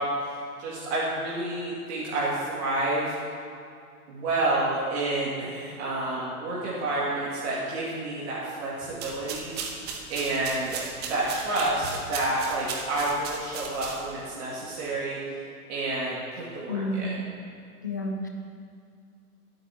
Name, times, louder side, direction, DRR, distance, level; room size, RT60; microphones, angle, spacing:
voice 1, 0.0-3.1 4.1-9.5 10.1-10.8 11.1-15.2 15.7-17.2, right 2 dB, 45° right, -7 dB, 2.4 m, -29 dB
sound 1, 8.9-14.3, right 5 dB, 20° right, 1.1 m, -37 dB
voice 2, 16.7-17.1 17.8-18.3, left 1 dB, 15° left, 2 dB, 0.3 m, -30 dB
23.0 x 8.8 x 3.0 m, 2.4 s
figure-of-eight pair, 105°, 45 cm